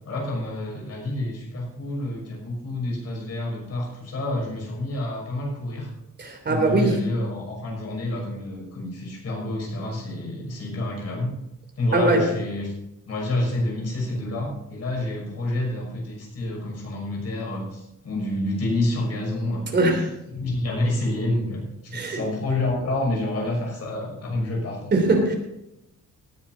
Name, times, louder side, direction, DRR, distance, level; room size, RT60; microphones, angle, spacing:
voice 1, 0.1-5.9 6.5-11.3 11.8-12.7 13.1-20.1 20.3-25.1, left 1 dB, 50° left, -2 dB, 5.9 m, -28 dB
voice 2, 6.2-7.0 11.9-12.2 19.7-20.0 21.9-22.2 24.9-25.4, right 2 dB, 35° right, 3 dB, 3.1 m, -21 dB
18.0 x 10.0 x 4.0 m, 0.88 s
wide cardioid pair, 170°, 32 cm